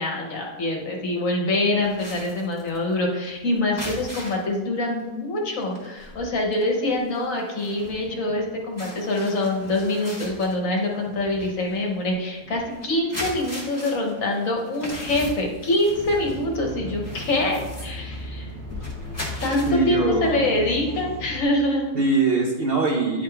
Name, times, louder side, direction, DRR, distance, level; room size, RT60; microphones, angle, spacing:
voice 1, 0.0-18.5 19.4-21.9, left 1 dB, 55° left, 0 dB, 1.3 m, -25 dB
sound 1, 1.8-4.6 5.0-5.1 5.5-19.7, equal, 15° left, 1.4 m, -39 dB
sound 2, 16.2-21.4, left 1 dB, 20° right, 1.2 m, -36 dB
voice 2, 19.7-20.4 21.9-23.2, right 3 dB, 45° right, -3 dB, 0.8 m, -22 dB
10.0 x 3.7 x 3.3 m, 1.2 s
omnidirectional pair, 1.7 m